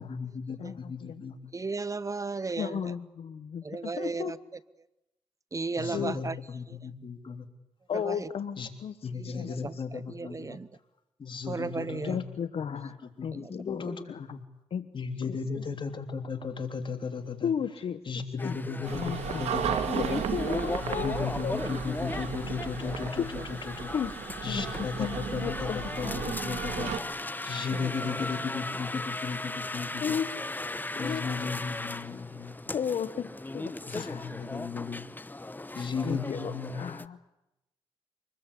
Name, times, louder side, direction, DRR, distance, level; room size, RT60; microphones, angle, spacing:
voice 1, 0.0-1.5 5.8-7.5 8.6-8.7 9.0-10.6 11.2-12.2 12.7-14.4 14.9-17.5 18.0-20.2 20.8-23.9 24.4-30.2 31.0-32.6 33.9-35.1 35.7-36.8, left 5 dB, 50° left, 6 dB, 3.3 m, -36 dB
voice 2, 0.6-1.2 2.6-4.3 5.9-6.2 7.9-8.9 9.2-9.5 12.1-14.4 14.7-14.9 15.2-15.6 17.4-18.0 18.4-18.5 18.9-19.7 19.9-21.5 23.2-23.3 23.9-24.1 24.5-24.6 25.0-26.1 30.0-30.6 31.0-31.2 32.7-34.3 36.0-37.2, left 7 dB, 65° left, 12 dB, 1.1 m, -34 dB
voice 3, 1.5-2.9 3.6-4.4 5.5-6.4 6.7-6.8 7.9-8.3 9.2-10.7 11.5-12.2 13.3-13.5 23.4-23.5 27.8-28.1, right 4 dB, 30° right, 17 dB, 1.0 m, -35 dB
sound 1, 18.4-37.0, left 2 dB, 15° left, 1.0 m, -37 dB
sound 2, 18.9-27.0, right 7 dB, 80° right, 2.0 m, -35 dB
25.0 x 20.5 x 8.4 m, 0.91 s
supercardioid pair, 55°, 11 cm